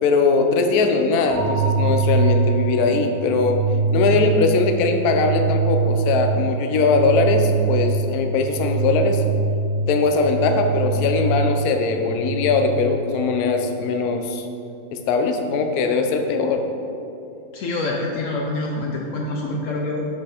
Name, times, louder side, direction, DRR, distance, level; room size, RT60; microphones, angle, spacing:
voice 1, 0.0-3.6 3.9-9.2 9.9-14.5 14.9-16.6, left 4 dB, 70° left, 5 dB, 0.9 m, -20 dB
sound 1, 1.3-13.3, right 4 dB, 80° right, 1.5 m, -23 dB
voice 2, 17.5-20.0, left 2 dB, 90° left, -1 dB, 0.7 m, -26 dB
6.8 x 5.0 x 4.4 m, 2.8 s
omnidirectional pair, 2.1 m